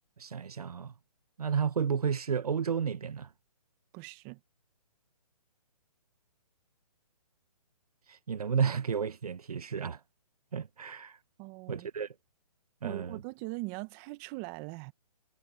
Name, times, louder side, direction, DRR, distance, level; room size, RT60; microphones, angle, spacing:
voice 1, 0.2-0.9 1.4-3.3 8.1-10.0 10.5-11.2 11.7-12.1 12.8-13.2, right 7 dB, 75° right, 1.7 m, -32 dB
voice 2, 3.9-4.4 11.4-11.9 12.8-14.9, right 25 dB, 25° right, 1.7 m, -41 dB
hypercardioid pair, 150°, 20 cm